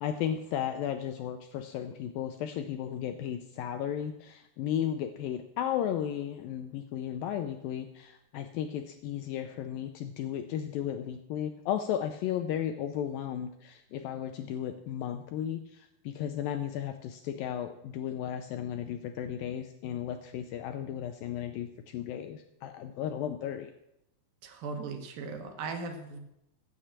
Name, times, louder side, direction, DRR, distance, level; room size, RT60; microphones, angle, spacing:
voice 1, 0.0-23.7, left 10 dB, 80° left, 7 dB, 2.1 m, -34 dB
voice 2, 24.4-26.2, right 4 dB, 70° right, 5 dB, 2.7 m, -38 dB
15.0 x 6.8 x 7.3 m, 0.85 s
omnidirectional pair, 4.6 m